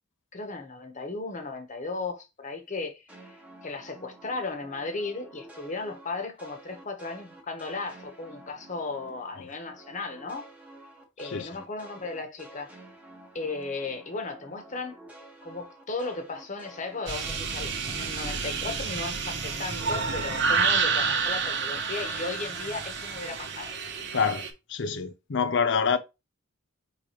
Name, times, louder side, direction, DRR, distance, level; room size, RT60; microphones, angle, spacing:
voice 1, 0.3-10.5 11.2-12.7 13.3-15.0 15.4-23.8, left 3 dB, 40° left, 1.0 m, -36 dB
sound 1, 3.1-9.4 9.7-19.0 19.3-22.3, right 2 dB, 5° right, 1.0 m, -50 dB
sound 2, 17.1-24.5, right 5 dB, 60° right, 0.9 m, -29 dB
voice 2, 24.1-24.4 24.7-26.0, left 6 dB, 60° left, 0.6 m, -26 dB
5.0 x 3.5 x 3.0 m
head